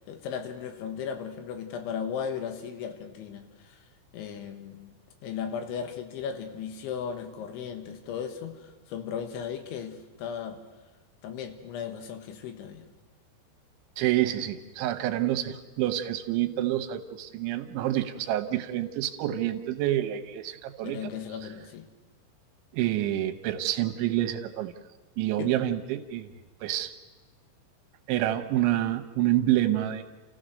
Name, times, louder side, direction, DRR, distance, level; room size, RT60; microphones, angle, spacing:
voice 1, 0.1-3.8 4.1-4.9 5.2-10.6 11.2-12.9 20.8-21.9 25.4-25.5, left 7 dB, 85° left, 7 dB, 3.8 m, -36 dB
voice 2, 14.0-21.0 22.7-24.7 25.2-26.3 26.6-26.9 28.1-30.0, right 13 dB, 80° right, 7 dB, 3.3 m, -27 dB
29.5 x 15.0 x 6.5 m, 1.2 s
omnidirectional pair, 5.3 m